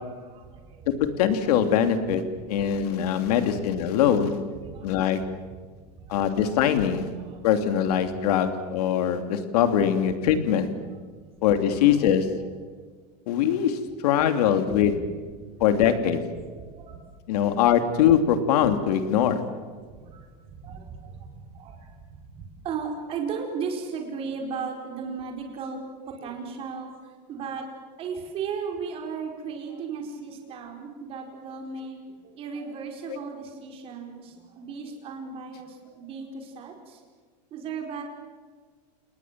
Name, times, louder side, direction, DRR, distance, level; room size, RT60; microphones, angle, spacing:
voice 1, 0.2-0.9 4.6-4.9 5.2-5.3 6.0-6.2 7.2-7.4 11.2-11.3 14.9-15.0 15.5-15.6 16.3-17.0 17.4-17.6 19.9-22.0 22.3-26.9 27.3-27.6 28.0-37.0 37.5-38.0, right 5 dB, 25° right, 2 dB, 4.6 m, -36 dB
voice 2, 0.9-2.2 2.5-4.4 4.8-5.2 6.1-7.1 7.4-10.7 11.4-12.3 13.3-15.0 15.6-16.2 17.3-19.4, left 9 dB, 65° left, 8 dB, 2.9 m, -22 dB
29.5 x 20.0 x 7.6 m, 1.5 s
supercardioid pair, 170°, 21 cm